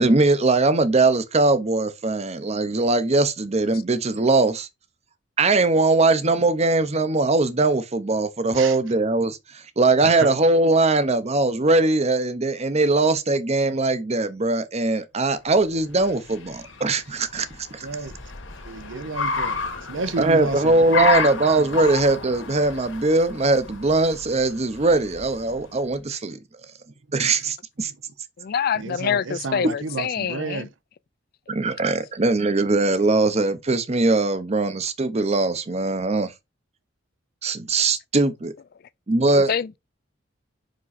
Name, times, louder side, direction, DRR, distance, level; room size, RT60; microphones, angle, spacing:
voice 1, 0.0-4.7 5.4-9.4 9.8-17.5 17.7-17.9 20.2-26.4 27.1-27.9 31.5-36.3 37.4-38.5 39.1-39.5, right 3 dB, 35° right, 0.8 m, -21 dB
voice 2, 10.0-10.3 17.8-18.2 18.6-21.7 28.7-30.7, right 4 dB, 70° right, 0.6 m, -32 dB
Car, 15.6-25.9, left 5 dB, 75° left, 1.7 m, -31 dB
voice 3, 28.4-30.7 39.3-39.8, left 7 dB, 50° left, 0.4 m, -26 dB
5.4 x 5.1 x 4.1 m
head